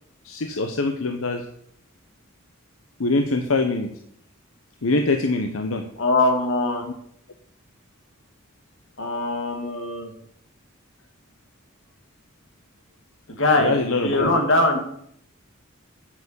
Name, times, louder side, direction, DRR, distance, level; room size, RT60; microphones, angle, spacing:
voice 1, 0.2-1.4 3.0-3.9 4.8-5.8 13.6-14.3, left 3 dB, 90° left, 6 dB, 0.9 m, -23 dB
voice 2, 6.0-6.8 9.0-10.1 13.4-14.8, left 2 dB, 70° left, 3 dB, 2.5 m, -22 dB
8.3 x 7.5 x 6.9 m, 0.69 s
head